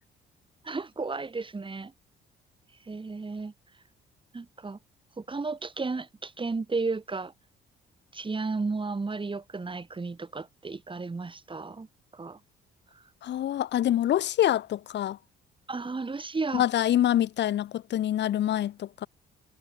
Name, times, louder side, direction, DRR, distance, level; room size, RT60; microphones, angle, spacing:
voice 1, 0.6-1.9 2.9-3.5 4.3-4.8 5.2-7.3 8.1-11.9 12.1-12.4 15.7-16.6, right 3 dB, 25° right, 4.1 m, -33 dB
voice 2, 13.2-15.2 16.5-19.1, left 12 dB, 60° left, 0.8 m, -26 dB
cardioid pair, 90°, 20 cm